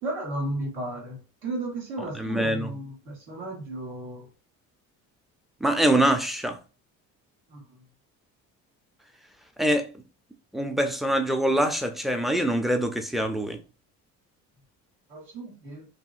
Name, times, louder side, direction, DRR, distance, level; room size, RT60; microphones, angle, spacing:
voice 1, 0.0-4.3 7.5-7.8 15.1-15.9, right 2 dB, 90° right, 1.4 m, -34 dB
voice 2, 2.2-2.7 5.6-6.6 9.6-9.8 10.5-13.6, right 1 dB, ahead, 0.3 m, -24 dB
2.7 x 2.6 x 2.4 m
supercardioid pair, 75°, 38 cm